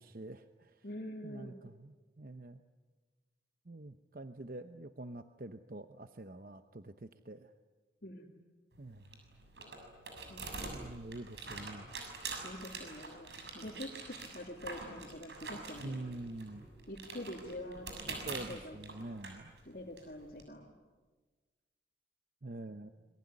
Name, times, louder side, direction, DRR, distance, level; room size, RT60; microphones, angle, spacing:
voice 1, 0.0-0.8 1.2-2.6 3.7-7.5 8.8-9.1 10.7-11.9 15.8-16.7 18.0-19.5 22.4-22.9, right 2 dB, 50° right, 9 dB, 0.9 m, -46 dB
voice 2, 0.8-1.6 8.0-8.3 10.3-10.8 12.4-16.1 16.9-18.8 19.7-20.7, left 1 dB, 55° left, -2 dB, 2.7 m, -46 dB
sound 1, 8.7-20.4, right 3 dB, 75° right, 6.7 m, -46 dB
27.0 x 23.0 x 9.7 m, 1.3 s
head